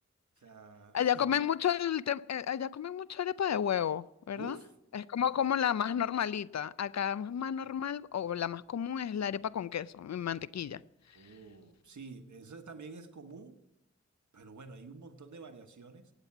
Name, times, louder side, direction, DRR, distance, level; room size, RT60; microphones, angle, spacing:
voice 1, 0.4-1.3 4.3-4.7 5.1-5.4 11.1-13.6 14.3-16.1, right 4 dB, 80° right, 1.3 m, -49 dB
voice 2, 0.9-4.6 4.9-10.8, left 9 dB, 65° left, 0.5 m, -32 dB
17.0 x 9.0 x 5.9 m
wide cardioid pair, 55°, 29 cm